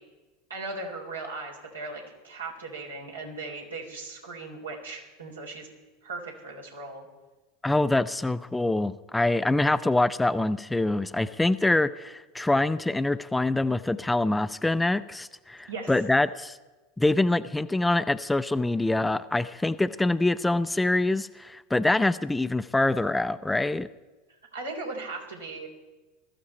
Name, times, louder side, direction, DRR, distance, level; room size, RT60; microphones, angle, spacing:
voice 1, 0.5-5.7 6.0-7.1 15.7-15.9 24.5-25.7, right 3 dB, 90° right, -1 dB, 3.8 m, -38 dB
voice 2, 7.6-16.6 17.0-23.9, left 2 dB, 10° left, 13 dB, 0.6 m, -25 dB
20.5 x 13.5 x 4.4 m, 1.2 s
hypercardioid pair, 85°, 0 cm